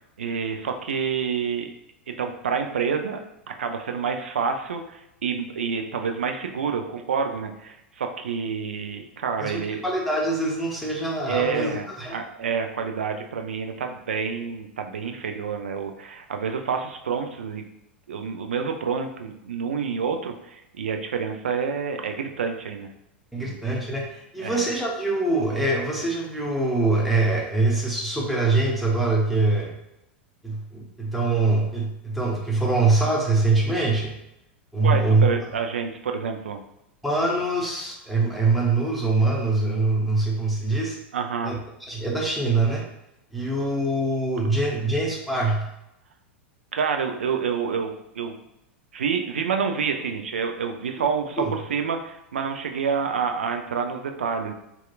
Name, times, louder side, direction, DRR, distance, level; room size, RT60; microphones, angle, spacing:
voice 1, 0.2-1.7 2.1-3.2 3.6-9.8 11.3-17.6 18.1-22.9 23.4-23.7 24.4-24.6 34.8-36.6 41.1-41.5 46.7-48.4 48.9-54.5, right 6 dB, 75° right, 5 dB, 0.3 m, -28 dB
voice 2, 9.4-12.2 23.3-29.7 30.4-34.1 34.7-35.3 37.0-41.0 41.4-41.6 41.8-42.8 43.3-45.6 51.4-51.5, right 2 dB, ahead, -3 dB, 0.7 m, -23 dB
2.8 x 2.3 x 2.3 m, 0.86 s
figure-of-eight pair, 90°, 6 cm